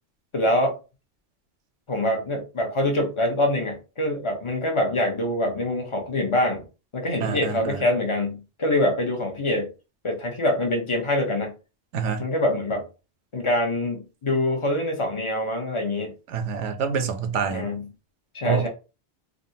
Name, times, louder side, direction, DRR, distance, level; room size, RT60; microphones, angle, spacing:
voice 1, 0.3-0.8 1.9-6.6 6.9-9.7 10.0-11.5 12.2-12.8 13.3-16.1 17.5-17.8 18.3-18.7, left 1 dB, 35° left, 0.5 m, -25 dB
voice 2, 7.2-7.8 11.9-12.2 16.3-17.7 18.4-18.7, right 6 dB, 85° right, 0.9 m, -27 dB
3.5 x 2.0 x 2.7 m
omnidirectional pair, 1.2 m